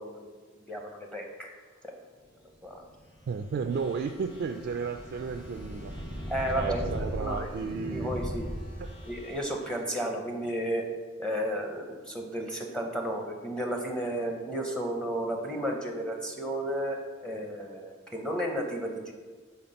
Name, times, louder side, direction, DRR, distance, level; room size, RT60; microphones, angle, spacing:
voice 1, 0.0-1.5 2.6-2.8 6.3-7.5 7.9-8.5 9.1-10.9 11.2-19.1, right 1 dB, 5° left, 1 dB, 0.6 m, -33 dB
sound 1, 3.0-9.3, equal, 75° left, 1.8 m, -38 dB
voice 2, 3.3-5.9 6.6-8.1 8.8-8.9, right 5 dB, 55° right, 4 dB, 0.3 m, -33 dB
sound 2, 3.7-9.9, equal, 25° left, 1.1 m, -55 dB
5.8 x 4.1 x 5.2 m, 1.5 s
head